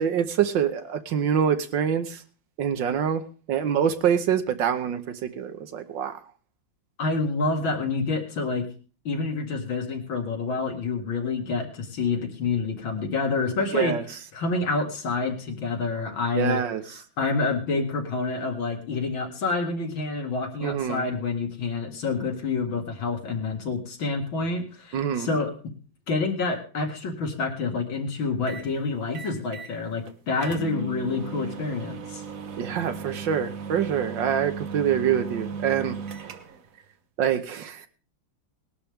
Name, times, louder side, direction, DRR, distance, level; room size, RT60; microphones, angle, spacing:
voice 1, 0.0-2.2 2.6-6.2 13.7-14.0 16.3-17.0 20.6-21.1 24.9-25.3 32.6-36.0 37.2-37.9, right 8 dB, 70° right, 9 dB, 1.6 m, -25 dB
voice 2, 7.0-8.7 9.0-13.9 14.3-16.6 17.2-25.5 26.1-32.2, left 4 dB, 80° left, 2 dB, 2.9 m, -28 dB
sound 1, 28.5-28.7 29.1-29.8 30.1-30.2 30.4-36.7, right 6 dB, 50° right, 1.3 m, -36 dB
19.0 x 11.5 x 3.6 m, 0.38 s
omnidirectional pair, 2.1 m